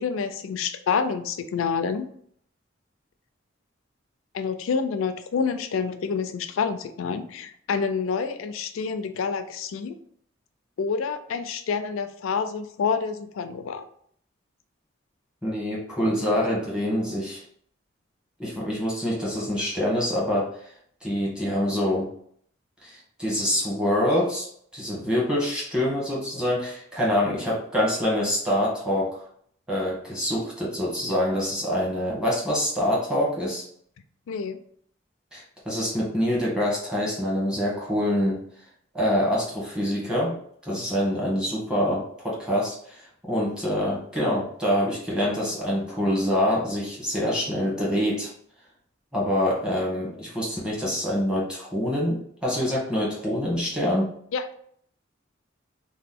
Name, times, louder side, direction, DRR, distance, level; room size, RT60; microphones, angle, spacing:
voice 1, 0.0-2.1 4.3-9.9 10.8-13.8 34.3-34.6 54.3-54.5, left 5 dB, 85° left, 9 dB, 0.4 m, -28 dB
voice 2, 15.4-17.4 18.4-20.7 21.0-22.1 22.8-24.5 24.7-29.2 29.7-33.6 35.3-38.4 38.9-40.4 40.7-48.3 49.1-54.1, equal, 5° right, -6 dB, 1.0 m, -25 dB
2.9 x 2.1 x 3.6 m, 0.64 s
head